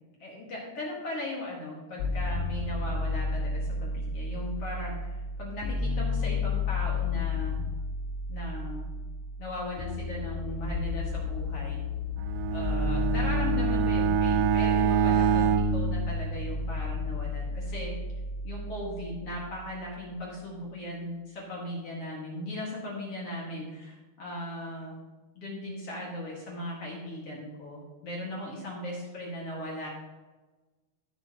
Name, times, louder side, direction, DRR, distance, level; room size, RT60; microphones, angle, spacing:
voice 1, 0.2-5.1 5.4-7.6 8.3-8.9 9.4-11.8 12.5-17.9 18.4-25.0 25.4-29.9, left 1 dB, 50° left, -3 dB, 2.1 m, -38 dB
sound 1, 2.0-20.0, left 4 dB, 90° left, 2.8 m, -32 dB
Bowed string instrument, 12.2-16.8, right 10 dB, 90° right, 2.8 m, -26 dB
17.5 x 6.3 x 2.9 m, 1.2 s
omnidirectional pair, 4.9 m